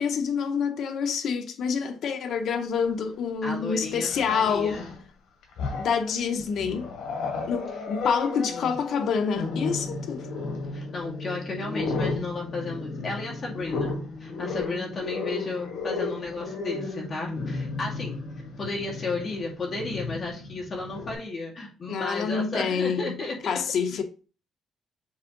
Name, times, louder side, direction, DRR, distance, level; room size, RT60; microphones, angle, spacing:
voice 1, 0.0-4.8 5.7-6.9 7.5-10.3 21.9-23.2 23.5-24.0, left 6 dB, 60° left, 0.9 m, -27 dB
Growling, 2.9-3.0 4.0-5.0 5.4-6.1 6.6-21.1, left 3 dB, 80° left, 1.9 m, -34 dB
voice 2, 3.4-4.9 8.4-8.7 10.7-18.2 18.6-23.4, left 3 dB, 35° left, 2.3 m, -33 dB
7.4 x 3.5 x 3.9 m
cardioid pair, 155°, 0 cm